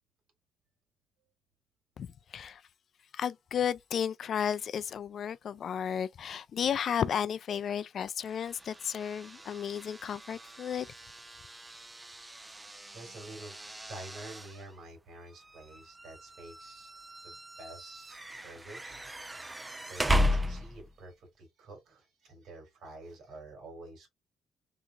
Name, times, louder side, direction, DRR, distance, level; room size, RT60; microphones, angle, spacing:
voice 1, 2.0-2.6 3.1-10.9, left 8 dB, 60° left, 0.3 m, -33 dB
sound 1, 8.2-21.0, equal, 15° right, 0.5 m, -36 dB
voice 2, 12.9-13.6 13.9-16.9 17.2-19.0 19.3-24.1, right 2 dB, 75° right, 2.4 m, -49 dB
3.6 x 2.9 x 2.4 m
cardioid pair, 90°, 0 cm